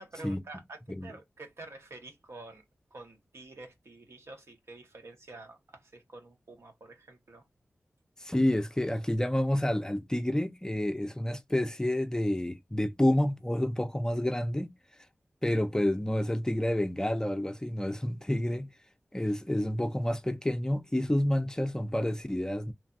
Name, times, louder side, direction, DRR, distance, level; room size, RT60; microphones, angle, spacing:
voice 1, 0.0-2.6 2.9-7.4, right 2 dB, 70° right, 1.0 m, -48 dB
voice 2, 8.2-14.7 15.4-18.7 19.1-22.7, left 1 dB, 15° left, 0.4 m, -29 dB
3.2 x 2.2 x 2.5 m
wide cardioid pair, 65°, 5 cm